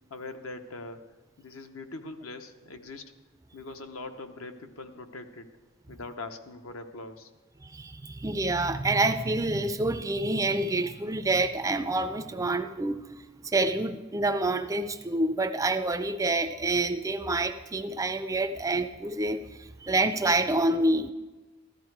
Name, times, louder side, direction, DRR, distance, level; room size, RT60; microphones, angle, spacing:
voice 1, 0.1-1.0 1.4-3.1 3.5-5.5 5.9-7.3, left 3 dB, 75° left, 6 dB, 1.0 m, -42 dB
voice 2, 7.6-21.1, right 2 dB, 15° right, 10 dB, 0.4 m, -27 dB
14.0 x 13.0 x 4.7 m, 1.2 s
head